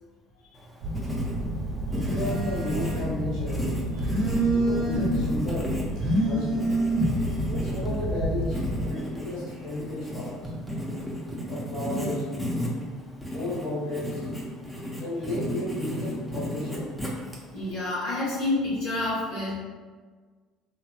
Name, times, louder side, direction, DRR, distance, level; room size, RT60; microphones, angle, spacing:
Writing, 0.5-17.7, equal, ahead, 0.8 m, -34 dB
Telephone, 0.8-8.9, right 1 dB, 55° right, 1.2 m, -27 dB
voice 1, 1.9-3.6 4.5-5.7 6.1-6.7 7.5-8.6 8.9-10.4 11.5-12.3 13.3-14.3 15.0-16.9, left 1 dB, 60° left, -8 dB, 1.2 m, -33 dB
voice 2, 17.5-19.5, left 2 dB, 80° left, -13 dB, 1.3 m, -28 dB
2.9 x 2.6 x 2.3 m, 1.4 s
hypercardioid pair, 65°, 0 cm